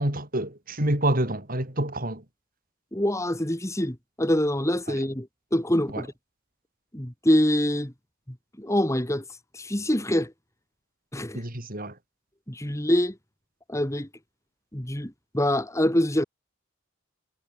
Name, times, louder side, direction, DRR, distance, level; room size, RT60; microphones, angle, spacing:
voice 1, 0.0-2.2 5.9-6.0 11.3-11.9, right 1 dB, 45° right, 5.6 m, -27 dB
voice 2, 2.9-6.1 6.9-7.9 8.6-9.2 9.5-10.3 11.1-11.4 12.5-13.1 13.7-14.1 14.7-16.2, left 1 dB, 15° left, 2.1 m, -25 dB
head